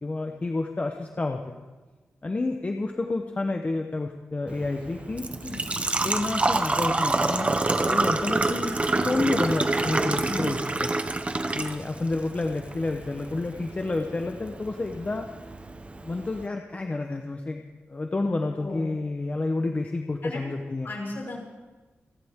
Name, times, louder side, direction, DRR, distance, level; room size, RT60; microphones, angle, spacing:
voice 1, 0.0-1.5 2.2-5.3 6.0-7.6 7.9-8.8 9.1-10.9 11.5-15.3 16.0-20.9, left 2 dB, 30° left, 4 dB, 1.0 m, -29 dB
Engine / Trickle dribble / Fill (with liquid), 4.5-16.5, right 2 dB, 30° right, 0.9 m, -28 dB
voice 2, 10.2-10.5 18.6-19.0 20.2-20.5 20.8-21.4, left 2 dB, 55° left, -2 dB, 5.6 m, -36 dB
28.5 x 11.0 x 3.7 m, 1.3 s
wide cardioid pair, 95°, 4 cm